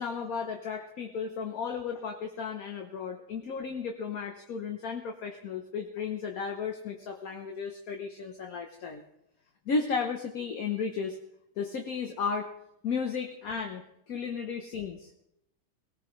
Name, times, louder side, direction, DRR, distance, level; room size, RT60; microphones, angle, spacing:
voice 1, 0.0-9.0 9.7-11.2 11.6-12.5 12.8-15.3, left 5 dB, 55° left, 4 dB, 1.2 m, -34 dB
19.5 x 18.0 x 3.2 m, 0.80 s
omnidirectional pair, 2.3 m